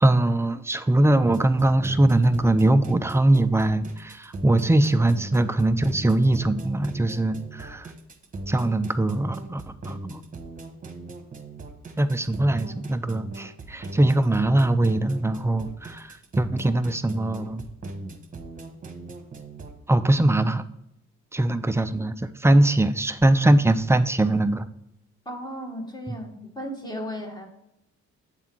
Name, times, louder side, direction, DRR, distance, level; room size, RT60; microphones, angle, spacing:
voice 1, 0.0-7.9 8.5-10.2 12.0-17.6 19.9-20.6 21.3-24.7 26.1-26.2, right 1 dB, 10° right, 11 dB, 0.4 m, -21 dB
sound 1, 1.2-19.8, right 2 dB, 25° right, 1.2 m, -39 dB
voice 2, 25.2-27.5, equal, 15° left, 2 dB, 1.6 m, -35 dB
8.2 x 3.7 x 4.4 m, 0.83 s
cardioid pair, 90°, 30 cm